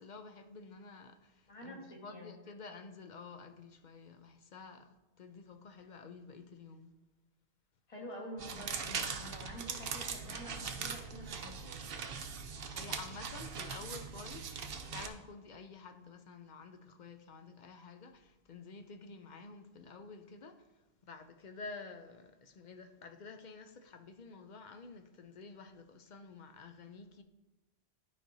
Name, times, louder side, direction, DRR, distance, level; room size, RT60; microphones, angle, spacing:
voice 1, 0.0-6.9 12.4-14.6 14.9-20.6 21.0-27.2, left 4 dB, 55° left, 0.6 m, -50 dB
voice 2, 1.5-2.3 7.9-11.8, equal, 30° left, 1.4 m, -48 dB
sound 1, 8.4-15.1, right 6 dB, 60° right, 0.8 m, -41 dB
11.5 x 5.0 x 2.7 m
omnidirectional pair, 1.2 m